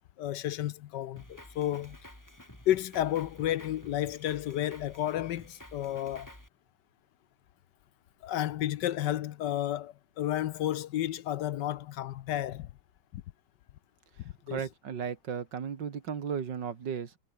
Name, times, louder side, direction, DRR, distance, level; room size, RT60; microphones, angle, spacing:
voice 1, 0.2-2.0 2.7-6.3 8.2-12.7 13.1-13.2 14.5-14.6, left 12 dB, 70° left, 1.3 m, -32 dB
Drum kit, 1.2-6.5, left 1 dB, 10° left, 4.1 m, -51 dB
voice 2, 14.5-17.2, right 7 dB, 65° right, 2.4 m, -35 dB
omnidirectional pair, 2.1 m